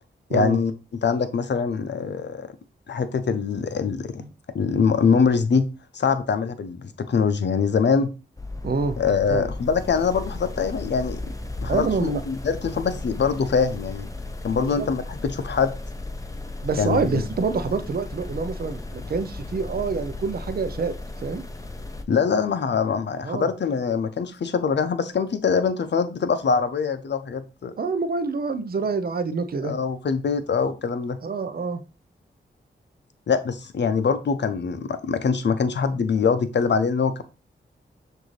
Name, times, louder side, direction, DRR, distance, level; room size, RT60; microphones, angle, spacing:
voice 1, 0.3-0.7 1.0-2.5 2.9-4.2 4.5-5.7 5.9-8.1 9.0-11.2 11.6-14.1 14.4-15.7 16.8-17.2 22.1-27.7 29.6-31.2 33.3-37.2, left 5 dB, 60° left, 11 dB, 0.6 m, -23 dB
sound 1, 8.4-22.0, left 2 dB, 15° left, 0.7 m, -35 dB
voice 2, 8.6-9.0 9.3-9.5 11.7-12.2 14.5-14.9 16.6-20.9 21.2-21.4 23.2-23.5 27.8-29.8 31.2-31.8, right 4 dB, 50° right, 9 dB, 0.6 m, -26 dB
6.1 x 2.7 x 3.2 m, 0.32 s
cardioid pair, 70°, 20 cm